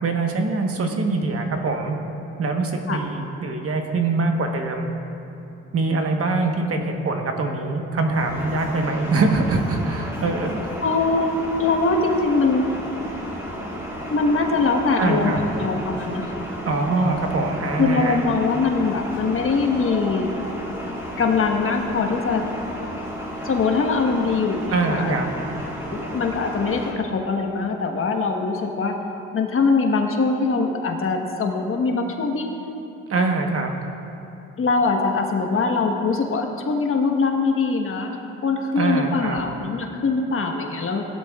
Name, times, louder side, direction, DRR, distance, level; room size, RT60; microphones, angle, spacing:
voice 1, 0.0-2.0 2.4-4.9 5.7-10.6 15.0-15.4 16.6-18.2 24.7-25.3 33.1-33.7 38.7-39.4, right 3 dB, 50° right, 3 dB, 1.3 m, -23 dB
sound 1, 8.1-26.9, equal, 10° right, 2.4 m, -33 dB
voice 2, 10.8-12.7 14.1-16.5 17.8-20.4 21.2-22.4 23.4-25.1 25.8-29.0 29.3-32.5 34.6-41.1, left 4 dB, 45° left, 2 dB, 1.3 m, -22 dB
17.0 x 11.5 x 2.4 m, 2.8 s
cardioid pair, 90°, 30 cm